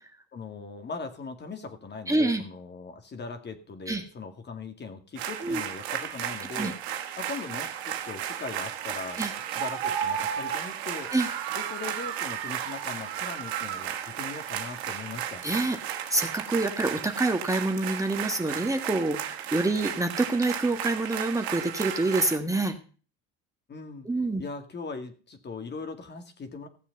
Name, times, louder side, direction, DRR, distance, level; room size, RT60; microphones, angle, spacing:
voice 1, 0.3-6.8 7.2-11.1 11.5-15.5 23.7-24.1 24.4-26.7, left 4 dB, 35° left, 7 dB, 2.2 m, -40 dB
voice 2, 2.1-2.4 3.9-4.0 5.4-5.6 6.4-6.7 9.2-9.3 11.1-11.3 15.4-15.8 16.1-22.7 24.0-24.4, right 2 dB, 10° right, 5 dB, 1.6 m, -27 dB
sound 1, 5.2-22.4, right 10 dB, 85° right, 1.6 m, -34 dB
15.5 x 7.1 x 5.3 m, 0.38 s
hypercardioid pair, 80°, 31 cm